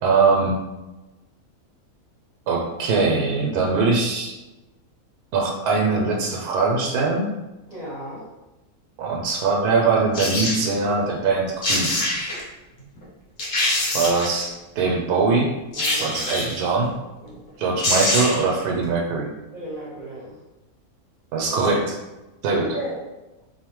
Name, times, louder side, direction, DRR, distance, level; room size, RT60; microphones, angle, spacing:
voice 1, 0.0-0.6 2.5-4.3 5.3-7.2 9.0-11.9 13.9-15.5 16.0-16.9 17.6-19.3 21.3-22.0 22.4-22.8, right 4 dB, 85° right, 0 dB, 1.1 m, -22 dB
voice 2, 7.7-8.2 15.8-16.0 17.2-17.4 19.5-20.4 22.6-23.0, right 1 dB, 35° right, -11 dB, 1.0 m, -34 dB
sound 1, 10.1-10.6 11.3-11.4 11.6-12.4 13.0-13.1 13.4-14.4 15.7-16.6 17.5-17.6 17.8-18.5 18.8-18.9, left 1 dB, 75° left, 1.3 m, -24 dB
2.9 x 2.0 x 2.9 m, 1.0 s
omnidirectional pair, 1.6 m